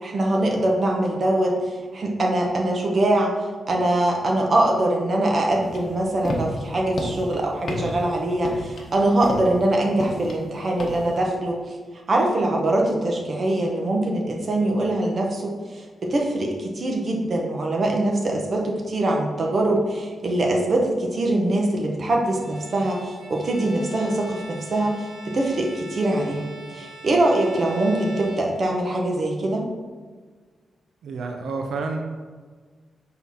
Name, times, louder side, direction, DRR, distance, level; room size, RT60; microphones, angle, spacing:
voice 1, 0.0-3.3 3.7-11.8 12.1-25.0 25.3-26.4 26.7-29.7, right 1 dB, 35° right, 0 dB, 1.1 m, -23 dB
sound 1, 5.6-11.2, left 1 dB, 40° left, 1.1 m, -32 dB
Bowed string instrument, 22.2-29.0, right 1 dB, 65° right, 1.4 m, -43 dB
voice 2, 31.0-32.0, right 4 dB, 80° right, 3 dB, 0.6 m, -29 dB
7.1 x 3.9 x 5.7 m, 1.5 s
wide cardioid pair, 170°, 0 cm